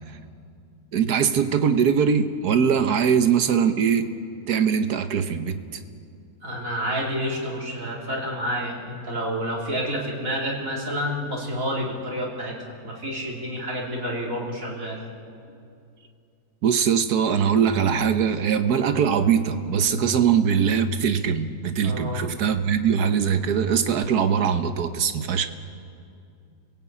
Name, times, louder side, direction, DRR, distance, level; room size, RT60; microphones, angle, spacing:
voice 1, 0.9-4.1 4.5-5.8 16.6-25.5, right 7 dB, 85° right, 9 dB, 1.6 m, -22 dB
voice 2, 6.4-15.0 21.8-22.2, equal, 55° right, -2 dB, 3.5 m, -29 dB
28.5 x 17.0 x 8.7 m, 2.5 s
omnidirectional pair, 1.6 m